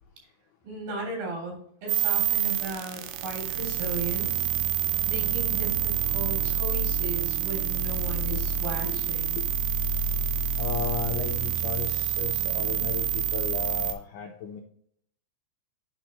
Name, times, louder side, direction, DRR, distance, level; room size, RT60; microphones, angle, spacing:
voice 1, 0.6-4.5 5.1-9.4, right 2 dB, 65° right, -2 dB, 4.8 m, -35 dB
sound 1, 1.9-13.9, right 8 dB, 85° right, 2.8 m, -27 dB
voice 2, 8.8-9.5 10.6-14.6, left 7 dB, 75° left, 1 dB, 1.9 m, -34 dB
9.2 x 5.8 x 3.0 m, 0.65 s
omnidirectional pair, 4.6 m